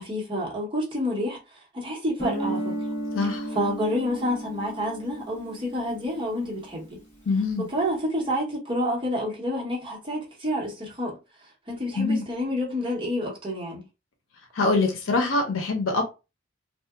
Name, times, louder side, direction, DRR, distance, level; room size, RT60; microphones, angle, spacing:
voice 1, 0.0-2.8 3.5-7.0 7.6-11.2 11.7-13.9, equal, 25° right, 0.8 m, -29 dB
Guitar, 2.2-6.8, right 1 dB, 40° left, 1.2 m, -34 dB
voice 2, 7.3-7.7 12.0-12.2 14.6-16.0, left 3 dB, 85° left, 0.6 m, -24 dB
2.7 x 2.0 x 2.3 m
head